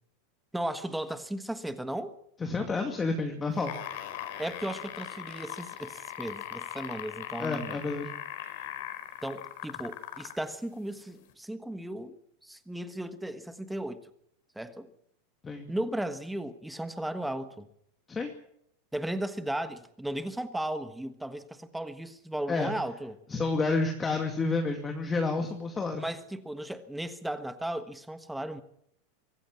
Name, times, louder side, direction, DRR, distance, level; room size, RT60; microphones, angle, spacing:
voice 1, 0.5-2.1 4.4-7.8 9.2-12.2 12.4-14.1 14.5-14.9 15.7-17.7 18.9-23.2 25.4-25.5 25.9-28.6, right 1 dB, 5° right, 1.4 m, -35 dB
voice 2, 2.4-3.7 7.4-8.1 15.4-15.7 18.1-18.3 22.5-22.7 23.3-26.0, left 3 dB, 15° left, 2.3 m, -29 dB
sound 1, 3.5-10.5 11.3-11.4, left 12 dB, 65° left, 4.6 m, -39 dB
24.5 x 14.5 x 7.4 m
supercardioid pair, 145°, 0 cm